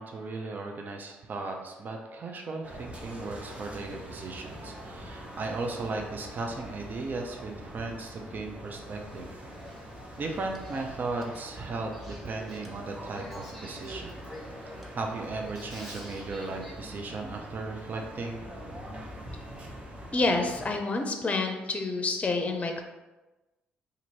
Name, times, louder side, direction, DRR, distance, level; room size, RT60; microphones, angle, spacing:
voice 1, 0.0-9.3 10.2-14.2 14.9-18.4, right 3 dB, 45° right, 2 dB, 0.6 m, -36 dB
sound 1, 2.6-20.8, equal, 30° right, 0.9 m, -44 dB
Male speech man speaking / Female speech woman speaking / Conversation, 9.1-16.7, equal, 5° right, 1.2 m, -47 dB
voice 2, 20.1-22.8, left 3 dB, 30° left, 4 dB, 0.6 m, -28 dB
2.9 x 2.6 x 4.1 m, 1.1 s
supercardioid pair, 60°, 4 cm